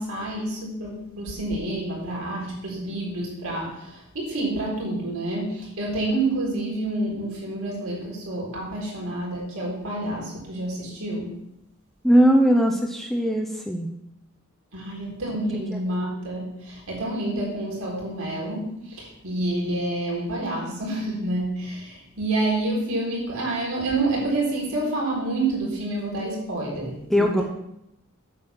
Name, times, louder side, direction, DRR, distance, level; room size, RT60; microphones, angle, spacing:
voice 1, 0.0-11.3 14.7-27.4, right 2 dB, 85° right, -3 dB, 4.3 m, -28 dB
voice 2, 12.0-13.9 15.5-15.6 27.1-27.4, equal, ahead, 2 dB, 0.7 m, -19 dB
8.8 x 8.1 x 6.0 m, 0.83 s
head